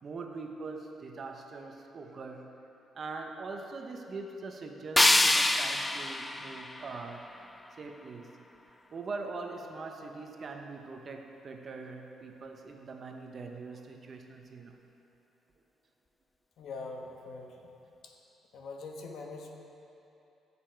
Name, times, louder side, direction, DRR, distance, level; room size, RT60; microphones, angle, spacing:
voice 1, 0.0-2.5 2.9-7.5 7.8-8.3 8.9-14.8, right 3 dB, 40° right, 3 dB, 0.9 m, -42 dB
sound 1, 5.0-7.9, left 2 dB, 10° left, 0.4 m, -27 dB
voice 2, 16.6-17.7 18.0-18.1 18.5-19.5, left 3 dB, 60° left, 1 dB, 1.2 m, -43 dB
15.0 x 7.0 x 4.5 m, 2.9 s
cardioid pair, 135°, 0 cm